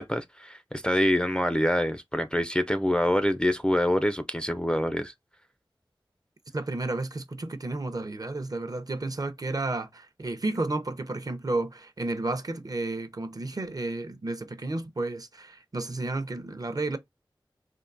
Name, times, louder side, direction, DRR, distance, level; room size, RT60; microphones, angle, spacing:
voice 1, 0.0-5.1, left 1 dB, 10° left, 0.4 m, -25 dB
voice 2, 6.5-17.0, right 2 dB, 45° right, 0.6 m, -32 dB
3.6 x 2.6 x 2.5 m
wide cardioid pair, 50°, 9 cm